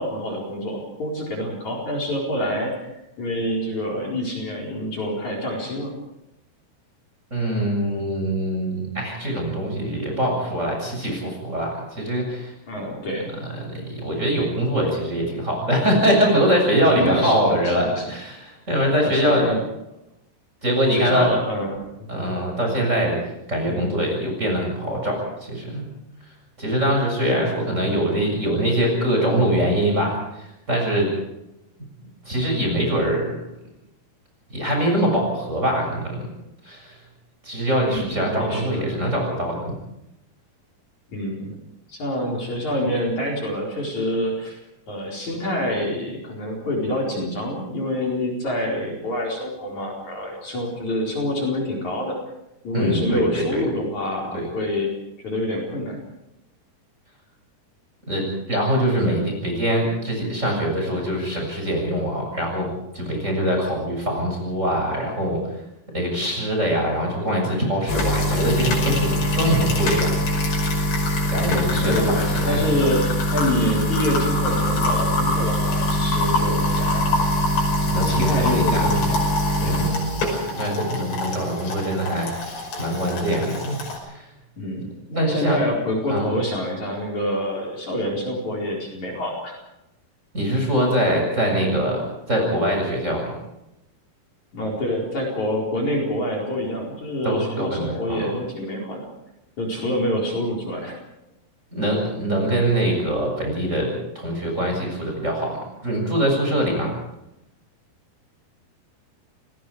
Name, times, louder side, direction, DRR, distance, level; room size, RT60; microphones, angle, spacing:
voice 1, 0.0-2.9 3.2-5.9 12.7-13.3 16.9-18.1 19.0-19.6 20.9-22.1 23.7-24.0 37.9-38.9 41.1-41.6 41.9-44.6 44.9-52.2 52.6-54.9 55.2-56.0 71.4-77.2 78.0-79.2 79.6-79.8 80.4-80.7 84.6-89.6 94.5-99.0 99.6-101.0, left 1 dB, 45° left, -2 dB, 5.7 m, -27 dB
voice 2, 7.3-12.5 13.5-19.5 20.6-21.3 22.1-23.2 23.5-25.9 26.6-31.1 31.8-31.9 32.3-33.4 34.5-36.3 36.6-37.0 37.4-39.7 52.7-53.7 54.3-54.5 58.1-62.7 62.9-65.4 65.9-70.2 71.3-72.6 77.8-78.9 79.6-80.2 80.6-82.3 82.8-84.3 85.2-85.6 86.1-86.3 90.3-92.0 92.3-93.3 97.2-98.3 101.7-106.9, equal, 15° right, 0 dB, 7.2 m, -23 dB
sound 1, 67.9-84.0, left 1 dB, 90° left, 7.8 m, -23 dB
29.0 x 19.5 x 5.0 m, 0.88 s
omnidirectional pair, 4.8 m